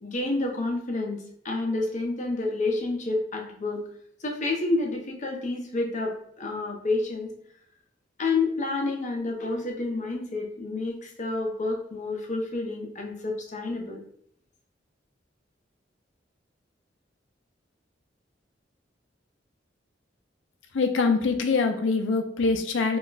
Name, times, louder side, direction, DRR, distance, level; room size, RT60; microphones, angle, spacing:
voice 1, 0.0-3.8 4.2-7.3 8.2-14.0, left 2 dB, 40° left, 1 dB, 0.6 m, -29 dB
voice 2, 20.7-23.0, left 4 dB, 85° left, 5 dB, 0.5 m, -24 dB
2.4 x 2.1 x 3.8 m, 0.65 s
head